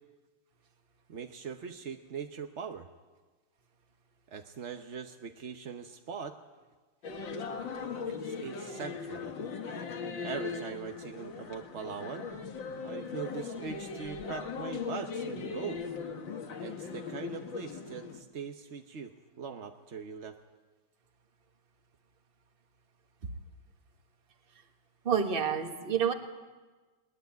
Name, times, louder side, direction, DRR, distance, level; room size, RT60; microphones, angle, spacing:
voice 1, 1.1-2.9 4.3-6.4 8.0-9.3 10.2-12.3 12.8-15.8 16.6-20.4, right 6 dB, 50° right, 5 dB, 0.9 m, -41 dB
sound 1, 7.0-18.2, left 5 dB, 65° left, 2.3 m, -39 dB
voice 2, 25.0-26.1, right 7 dB, 30° right, 6 dB, 1.5 m, -28 dB
20.5 x 20.5 x 9.3 m, 1.3 s
omnidirectional pair, 2.3 m